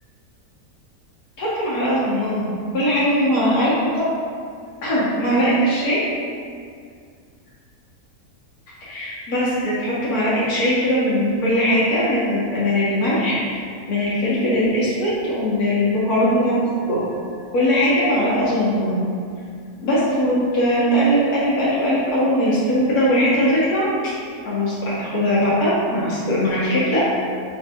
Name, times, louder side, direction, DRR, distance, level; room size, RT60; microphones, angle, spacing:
voice 1, 1.4-2.5 2.7-4.0 4.8-6.0 8.8-13.6 13.9-16.5 16.9-17.0 17.5-19.0 19.8-23.9 24.4-27.0, equal, 85° left, -9 dB, 1.6 m, -20 dB
4.5 x 3.5 x 2.7 m, 2.2 s
omnidirectional pair, 1.6 m